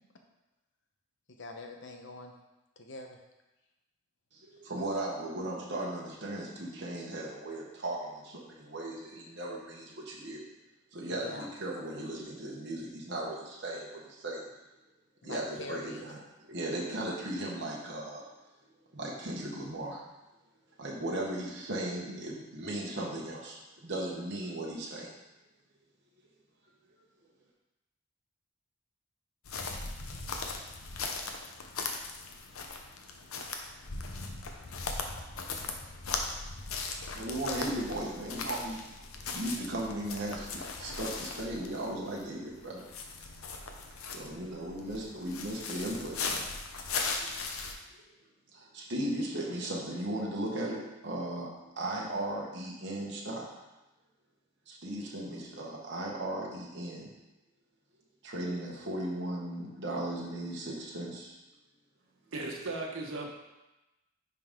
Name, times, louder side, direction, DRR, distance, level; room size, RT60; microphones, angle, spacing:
voice 1, 1.3-2.3 2.8-3.2 11.0-11.5 15.2-16.1, left 2 dB, 60° left, 3 dB, 0.9 m, -44 dB
voice 2, 4.3-10.5 10.9-14.5 15.2-16.2 16.5-18.3 18.9-20.0 20.8-25.1 37.1-38.8 39.3-42.8 44.1-46.4 47.2-47.3 48.5-53.5 54.7-57.1 58.2-61.4, right 1 dB, 55° right, -3 dB, 1.2 m, -37 dB
sound 1, 29.5-47.7, left 4 dB, 85° left, 0.8 m, -39 dB
voice 3, 62.3-63.3, right 2 dB, 75° right, 0 dB, 1.3 m, -36 dB
10.0 x 3.9 x 3.7 m, 1.0 s
head